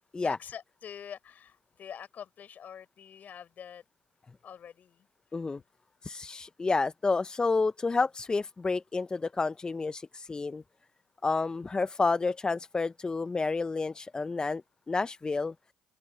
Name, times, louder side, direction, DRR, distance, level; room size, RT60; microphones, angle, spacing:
voice 1, 0.2-3.8 4.4-5.4, left 8 dB, 45° left, 7.6 m, -46 dB
voice 2, 6.0-10.6 11.2-14.6 14.9-15.5, left 3 dB, 20° left, 0.8 m, -30 dB
open air
hypercardioid pair, 65°, 4 cm